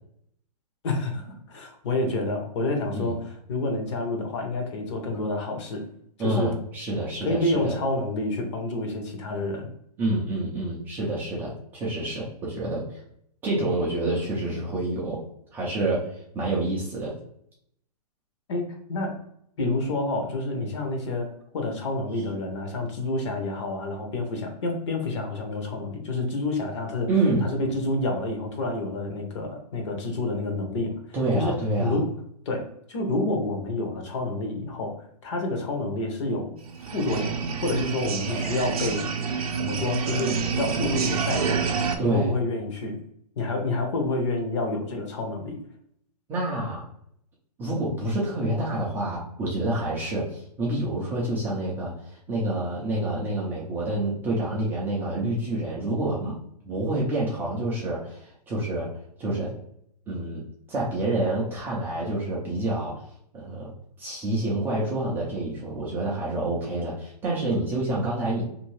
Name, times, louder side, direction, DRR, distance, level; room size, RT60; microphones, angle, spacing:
voice 1, 0.8-5.8 6.2-6.6 7.2-9.7 18.5-19.2 19.6-27.1 27.4-31.0 31.3-32.1 32.5-34.9 35.2-39.0 39.6-41.7 42.0-43.0 43.4-45.6, left 2 dB, 45° left, 3 dB, 0.9 m, -28 dB
voice 2, 6.2-7.7 10.0-13.0 13.4-15.2 15.5-17.1 27.1-27.5 31.1-32.0 42.0-42.3 46.3-46.9 47.6-56.3 56.6-58.9 59.2-59.5 60.1-63.1 63.3-63.7 64.0-68.4, right 2 dB, 10° right, -6 dB, 0.4 m, -28 dB
sound 1, 36.6-42.0, right 6 dB, 60° right, 0.5 m, -28 dB
2.6 x 2.6 x 3.0 m, 0.70 s
hypercardioid pair, 150°, 21 cm